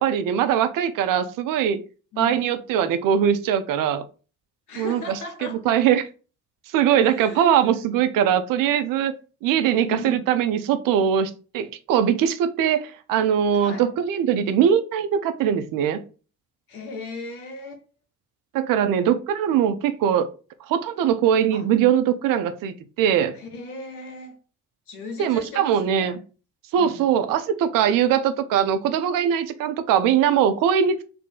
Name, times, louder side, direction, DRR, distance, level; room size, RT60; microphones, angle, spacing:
voice 1, 0.0-1.8 2.2-4.0 4.8-6.1 6.7-9.1 9.4-16.0 18.5-20.3 20.7-23.3 25.2-26.2 26.7-31.0, right 9 dB, 50° right, 0.6 m, -21 dB
voice 2, 2.1-2.4 4.7-5.6 7.0-7.7 9.9-10.3 13.5-13.9 16.7-17.8 21.5-21.7 23.3-24.4 24.9-26.2 26.8-27.0, left 3 dB, 80° left, 0.8 m, -37 dB
4.2 x 2.0 x 3.7 m
figure-of-eight pair, 45°, 44 cm